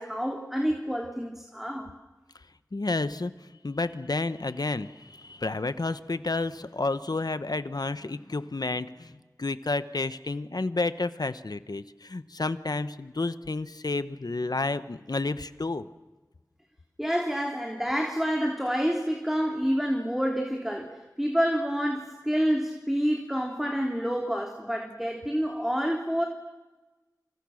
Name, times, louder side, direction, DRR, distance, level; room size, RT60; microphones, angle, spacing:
voice 1, 0.0-1.9 17.0-26.2, equal, 5° right, 2 dB, 3.2 m, -28 dB
voice 2, 2.7-3.3 3.6-15.9, left 3 dB, 80° left, 12 dB, 1.1 m, -30 dB
27.5 x 27.5 x 6.5 m, 1.2 s
wide cardioid pair, 45°, 7 cm